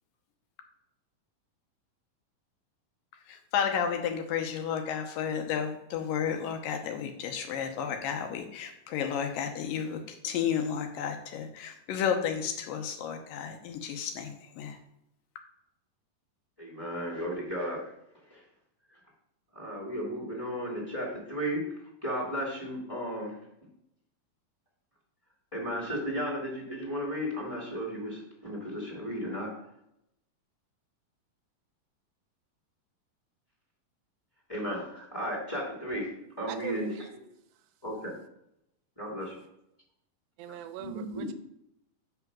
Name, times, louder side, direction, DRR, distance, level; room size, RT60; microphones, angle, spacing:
voice 1, 3.3-14.8, left 7 dB, 75° left, 5 dB, 2.4 m, -32 dB
voice 2, 16.6-17.8 18.3-18.4 19.5-21.6 22.0-23.3 25.5-29.5 34.5-36.1 36.4-37.2 37.8-38.1 39.0-39.4 40.5-41.3, equal, 10° left, -4 dB, 1.7 m, -34 dB
voice 3, 36.5-37.1 40.4-41.3, right 10 dB, 85° right, 9 dB, 2.3 m, -40 dB
5.8 x 5.7 x 5.9 m, 0.80 s
omnidirectional pair, 4.1 m